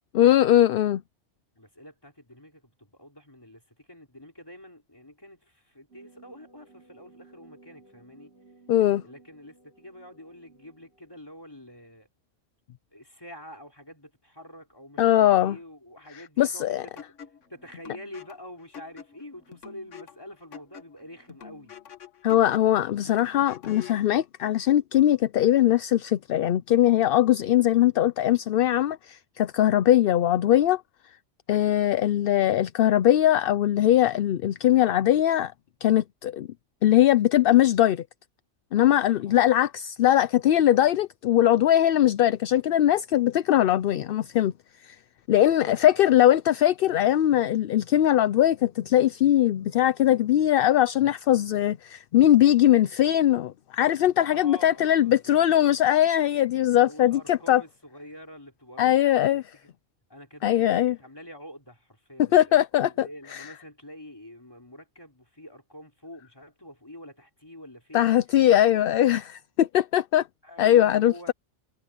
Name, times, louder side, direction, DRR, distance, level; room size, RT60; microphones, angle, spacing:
voice 1, 0.1-1.0 8.7-9.0 15.0-15.6 16.4-16.8 22.2-30.8 31.5-35.5 35.8-36.5 36.8-38.0 38.7-44.5 44.8-45.0 45.3-57.6 58.8-59.4 60.4-61.0 62.3-63.1 67.9-70.3 70.6-71.3, left 12 dB, 60° left, 0.6 m, -21 dB
voice 2, 1.6-8.4 9.0-12.1 12.9-21.8 39.3-39.5 45.6-46.0 54.2-55.4 56.8-59.7 60.1-68.1 70.4-71.3, left 1 dB, 20° left, 4.0 m, -47 dB
sound 1, 5.9-11.2, right 3 dB, 60° right, 7.5 m, -56 dB
sound 2, 17.0-24.1, left 7 dB, 85° left, 1.7 m, -46 dB
omnidirectional pair, 1.2 m